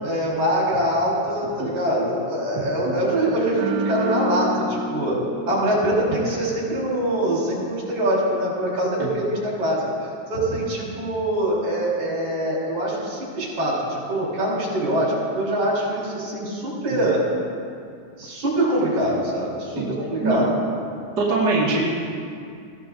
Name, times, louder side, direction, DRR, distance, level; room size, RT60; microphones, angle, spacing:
voice 1, 0.0-5.2 5.5-9.8 10.3-17.2 18.2-20.5, right 1 dB, 55° right, -5 dB, 6.1 m, -24 dB
sound 1, 3.5-6.8 7.1-7.4, right 1 dB, 85° right, 2.6 m, -29 dB
voice 2, 21.2-21.9, right 3 dB, 30° right, -6 dB, 2.5 m, -22 dB
20.5 x 16.5 x 3.9 m, 2.4 s
omnidirectional pair, 4.0 m